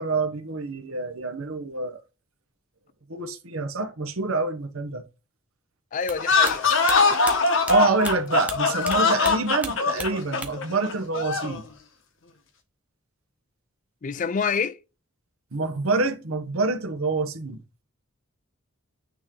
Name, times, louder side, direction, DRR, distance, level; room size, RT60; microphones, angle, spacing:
voice 1, 0.0-2.0 3.1-5.0 7.7-11.6 15.5-17.6, right 3 dB, 80° right, 1.0 m, -26 dB
voice 2, 5.9-6.7 14.0-14.8, left 5 dB, 35° left, 0.4 m, -27 dB
sound 1, 6.0-9.0 9.2-10.7 11.0-11.8, right 2 dB, 5° right, 0.8 m, -35 dB
sound 2, 6.2-11.6, left 4 dB, 60° left, 1.0 m, -22 dB
9.0 x 3.0 x 3.7 m
head